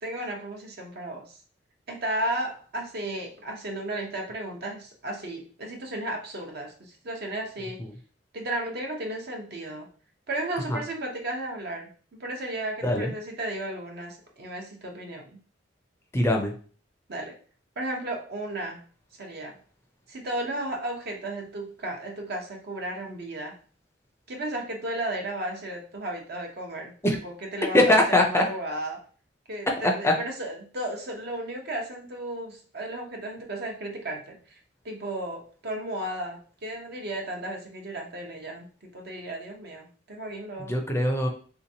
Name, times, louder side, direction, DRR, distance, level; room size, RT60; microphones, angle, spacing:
voice 1, 0.0-1.4 1.9-7.8 8.3-9.9 10.3-11.9 12.2-15.2 17.1-17.4 17.8-18.8 19.2-19.6 20.1-23.5 24.3-26.9 27.2-29.0 29.5-34.6 34.8-38.7 38.9-40.8, right 1 dB, 60° right, 1 dB, 0.9 m, -34 dB
voice 2, 16.1-16.5 27.0-27.2 27.7-28.4 29.8-30.1 40.7-41.3, left 1 dB, 15° left, 2 dB, 0.5 m, -21 dB
3.4 x 2.9 x 2.7 m, 0.41 s
head